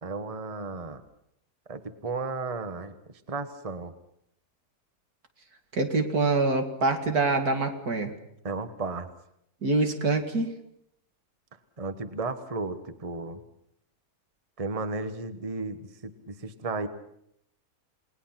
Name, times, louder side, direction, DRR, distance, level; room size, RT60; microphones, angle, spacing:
voice 1, 0.0-1.0 1.7-3.0 3.3-3.9 8.4-9.1 11.8-13.4 14.6-16.9, right 3 dB, 25° right, 9 dB, 1.3 m, -34 dB
voice 2, 5.7-8.1 9.6-10.5, right 3 dB, 75° right, 5 dB, 2.9 m, -25 dB
29.0 x 19.5 x 5.9 m, 0.74 s
omnidirectional pair, 1.6 m